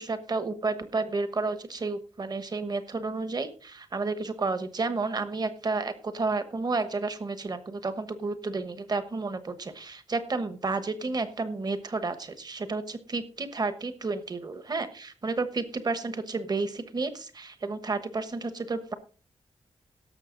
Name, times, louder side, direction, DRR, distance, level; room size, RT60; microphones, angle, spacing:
voice 1, 0.0-18.9, right 3 dB, 35° right, 11 dB, 1.2 m, -31 dB
17.5 x 7.1 x 3.9 m, 0.39 s
wide cardioid pair, 160°, 12 cm